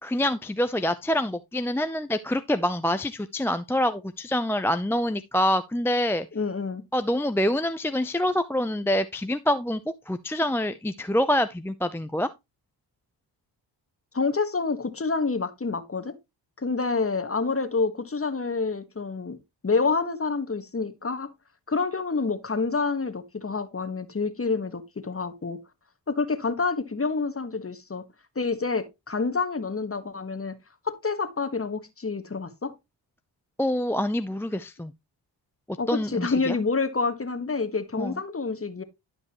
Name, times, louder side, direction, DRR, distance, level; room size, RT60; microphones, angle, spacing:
voice 1, 0.0-6.3 6.9-9.8 10.1-12.3 33.6-34.9 35.9-36.6 38.0-38.2, left 1 dB, 5° left, 0.5 m, -26 dB
voice 2, 6.3-6.8 14.1-16.1 16.6-19.4 19.6-21.3 21.7-25.6 26.1-28.0 28.3-30.6 30.8-32.7 35.8-38.8, left 4 dB, 30° left, 1.4 m, -28 dB
11.5 x 5.4 x 3.0 m
supercardioid pair, 50°, 47 cm